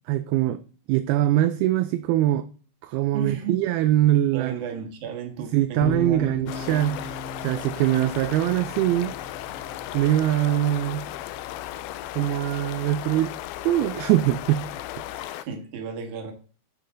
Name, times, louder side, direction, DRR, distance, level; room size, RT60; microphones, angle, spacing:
voice 1, 0.1-0.6 0.9-2.5 2.8-4.5 5.5-9.1 9.9-11.1 12.2-13.3 13.6-14.7 15.1-15.4, right 13 dB, 80° right, 2.3 m, -23 dB
voice 2, 3.1-3.6 4.3-6.5 15.3-16.3, right 6 dB, 55° right, 2.7 m, -34 dB
sound 1, 5.8-15.2, left 2 dB, 65° left, 2.9 m, -39 dB
sound 2, 6.5-15.5, left 14 dB, 85° left, 2.1 m, -36 dB
10.5 x 5.7 x 4.0 m
omnidirectional pair, 4.8 m